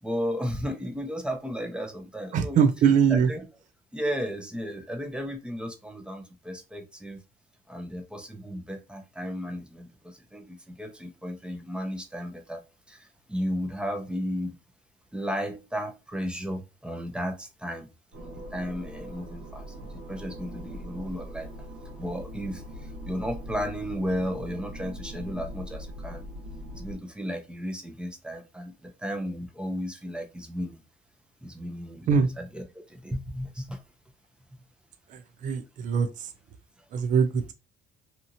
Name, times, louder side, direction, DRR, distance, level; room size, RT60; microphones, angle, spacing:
voice 1, 0.0-2.6 3.1-3.5 3.9-7.2 7.7-14.5 15.1-17.9 18.2-21.5 22.0-26.3 26.7-30.8 31.4-33.8, equal, 5° right, 0.6 m, -34 dB
voice 2, 2.3-3.3 32.1-32.3 35.4-36.1 36.9-37.5, right 6 dB, 50° right, 0.4 m, -22 dB
sound 1, 18.1-27.0, equal, 85° right, 1.3 m, -41 dB
2.8 x 2.4 x 2.7 m
cardioid pair, 110°, 17 cm